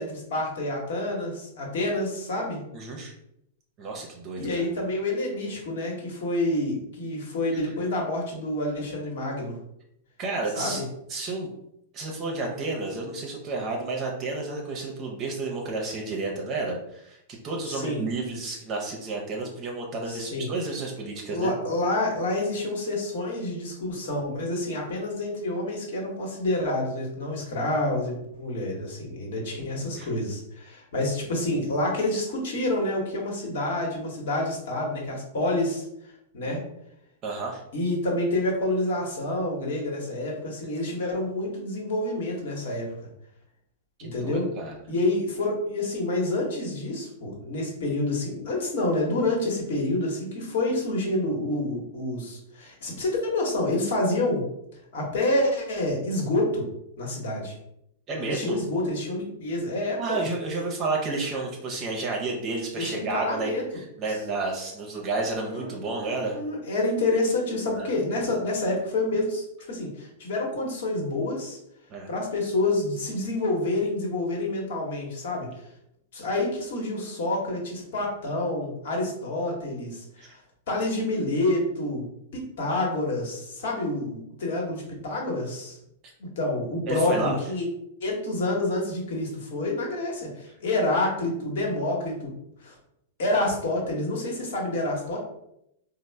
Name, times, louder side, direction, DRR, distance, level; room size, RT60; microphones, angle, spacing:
voice 1, 0.0-2.6 4.4-9.6 10.5-10.8 17.6-18.1 20.1-20.5 21.3-35.8 36.3-36.6 37.7-42.9 44.0-44.5 44.9-54.4 54.9-56.7 57.0-57.6 58.2-60.2 62.8-63.6 65.5-65.7 66.3-71.6 72.1-75.5 76.1-80.4 80.7-85.8 86.2-87.7 88.0-92.3 92.6-92.7 93.2-95.2, left 2 dB, 60° left, -1 dB, 1.2 m, -28 dB
voice 2, 2.7-3.1 3.8-4.7 10.2-10.8 11.1-11.5 11.9-21.5 29.8-30.1 36.5-36.6 37.2-37.6 44.0-44.8 58.1-58.6 60.0-66.4 67.7-67.9 71.9-72.1 80.2-80.3 86.0-86.1 86.9-87.3, right 3 dB, 35° right, 0 dB, 0.7 m, -31 dB
4.1 x 2.1 x 3.2 m, 0.79 s
figure-of-eight pair, 100°, 0 cm